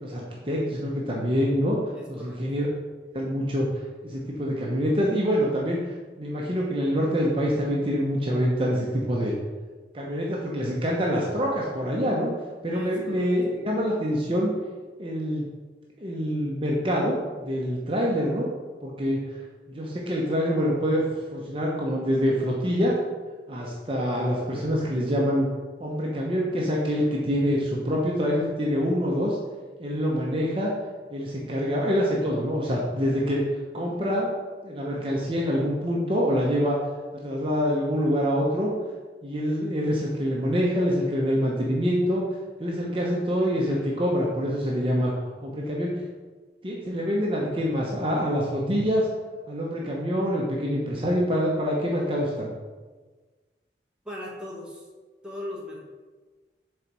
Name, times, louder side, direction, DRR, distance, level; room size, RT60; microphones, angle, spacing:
voice 1, 0.0-1.8 2.1-2.7 3.1-3.7 4.0-9.3 9.9-12.3 12.6-14.5 15.0-15.5 16.0-18.5 18.8-19.2 19.7-21.0 21.3-23.0 23.5-25.5 25.8-29.4 29.8-30.7 31.1-33.4 33.7-34.3 34.6-36.8 37.1-38.7 39.2-42.2 42.6-45.1 45.4-45.9 46.6-49.1 49.5-52.5, equal, 30° right, -3 dB, 0.8 m, -25 dB
voice 2, 1.9-2.4 12.7-13.3 54.0-54.9 55.2-55.8, left 1 dB, 5° right, -4 dB, 1.1 m, -38 dB
6.4 x 4.1 x 4.6 m, 1.3 s
head